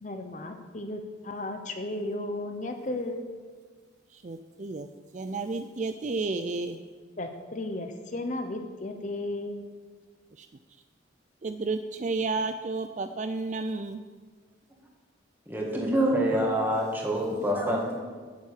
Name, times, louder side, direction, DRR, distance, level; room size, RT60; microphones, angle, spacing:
voice 1, 0.0-3.3 7.2-9.7, left 2 dB, 40° left, 5 dB, 0.9 m, -34 dB
voice 2, 4.1-4.9 5.1-6.8 10.4-10.5 11.4-14.0, right 3 dB, 40° right, 9 dB, 0.4 m, -32 dB
voice 3, 15.5-18.0, right 1 dB, 10° right, -2 dB, 2.0 m, -26 dB
9.3 x 7.4 x 8.5 m, 1.5 s
head